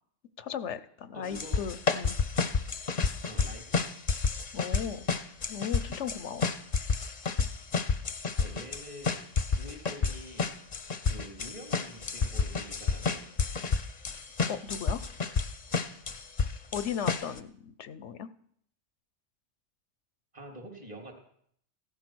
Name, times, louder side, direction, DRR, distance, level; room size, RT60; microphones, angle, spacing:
voice 1, 0.4-2.2 4.5-5.1 5.5-6.5 13.6-13.7 14.5-15.0 16.7-18.3, left 7 dB, 80° left, 14 dB, 1.1 m, -36 dB
voice 2, 1.1-1.7 3.2-3.8 8.4-9.2 9.5-10.5 11.1-13.2 20.3-21.1, equal, 35° right, 2 dB, 3.7 m, -46 dB
sound 1, 1.3-17.4, left 5 dB, 40° left, 0.9 m, -30 dB
16.0 x 13.5 x 6.2 m, 0.66 s
omnidirectional pair, 1.2 m